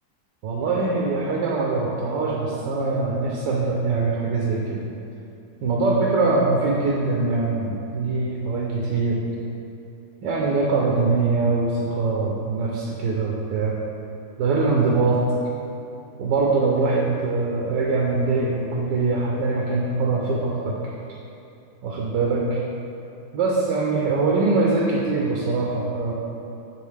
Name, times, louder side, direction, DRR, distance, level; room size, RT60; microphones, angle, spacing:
voice 1, 0.4-4.8 5.6-9.2 10.2-13.7 14.4-15.2 16.2-20.8 21.8-22.6 23.3-26.1, right 3 dB, 75° right, -3 dB, 1.3 m, -23 dB
8.5 x 4.1 x 3.3 m, 2.7 s
omnidirectional pair, 2.0 m